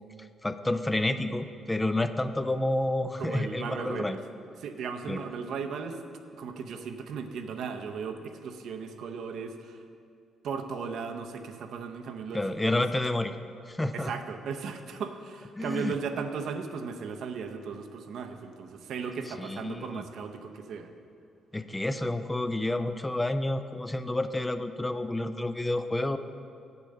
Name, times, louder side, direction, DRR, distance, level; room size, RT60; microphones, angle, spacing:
voice 1, 0.4-4.2 5.1-5.2 12.3-13.4 13.7-14.1 15.6-15.9 19.4-20.0 21.5-26.2, left 1 dB, 15° left, 10 dB, 0.4 m, -29 dB
voice 2, 3.2-4.2 4.6-6.0 6.3-9.8 10.4-12.8 13.9-20.9, right 5 dB, 75° right, 6 dB, 0.7 m, -36 dB
8.2 x 6.9 x 6.5 m, 2.5 s
cardioid pair, 80°, 0 cm